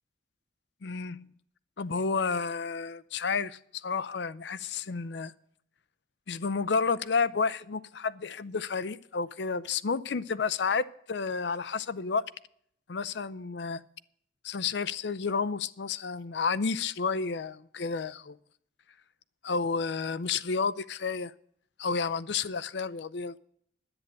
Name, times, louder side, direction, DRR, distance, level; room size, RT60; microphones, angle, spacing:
voice 1, 0.8-1.3 1.8-5.3 6.3-12.3 12.9-13.8 14.4-18.4 19.4-21.3 21.8-23.4, left 5 dB, 65° left, 0.5 m, -31 dB
10.5 x 8.8 x 7.5 m
head